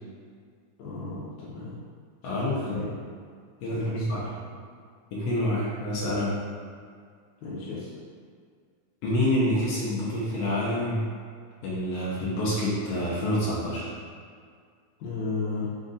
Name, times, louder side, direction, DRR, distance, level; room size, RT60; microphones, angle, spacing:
voice 1, 0.8-1.8 2.4-2.9 3.8-4.3 7.4-7.9 15.0-15.7, left 3 dB, 85° left, -9 dB, 2.2 m, -34 dB
voice 2, 2.2-2.8 3.6-4.2 5.1-6.4 9.0-11.0 11.6-13.9, left 1 dB, 70° left, -7 dB, 1.7 m, -27 dB
5.2 x 2.5 x 3.9 m, 2.1 s
omnidirectional pair, 3.4 m